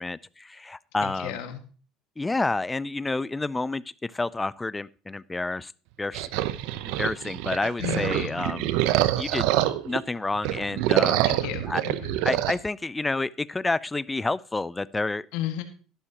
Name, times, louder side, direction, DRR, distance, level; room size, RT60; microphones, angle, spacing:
voice 1, 0.0-1.4 2.2-5.7 6.0-6.3 7.0-8.7 9.2-9.5 9.8-11.2 11.7-11.8 12.2-15.3, left 3 dB, 15° left, 21 dB, 0.4 m, -29 dB
voice 2, 1.0-1.6 7.8-8.4 11.2-12.2 15.3-15.6, left 11 dB, 75° left, 7 dB, 1.8 m, -33 dB
sound 1, 6.1-10.0 10.4-12.6, right 14 dB, 75° right, 0.8 m, -26 dB
12.5 x 11.5 x 2.9 m, 0.38 s
supercardioid pair, 105°, 0 cm